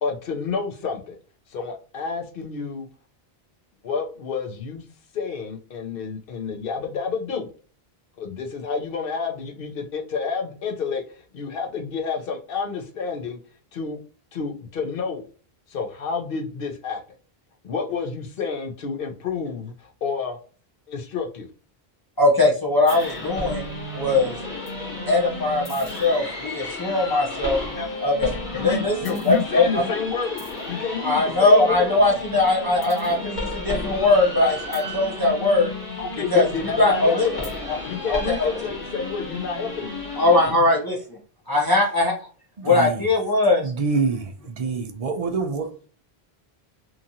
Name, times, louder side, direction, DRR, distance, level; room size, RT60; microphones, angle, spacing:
voice 1, 0.0-1.2 1.5-2.9 3.8-4.8 5.1-7.5 8.2-13.4 13.7-14.0 14.3-15.2 15.7-17.0 17.6-20.4 20.9-21.5 27.6-27.9 28.5-32.0 36.0-37.5 37.9-40.0 40.5-40.6, left 5 dB, 65° left, 0.8 m, -29 dB
voice 2, 22.2-23.7 23.9-24.3 25.1-27.6 28.0-29.9 31.0-35.7 36.3-36.4 36.8-37.3 38.1-38.3 40.2-41.2 41.5-42.1 42.6-43.6, left 2 dB, 25° left, 0.7 m, -20 dB
sound 1, 22.9-40.5, left 2 dB, 50° left, 1.2 m, -33 dB
voice 3, 42.6-43.1 43.6-45.7, right 4 dB, 55° right, 0.4 m, -26 dB
2.9 x 2.4 x 2.6 m
omnidirectional pair, 1.1 m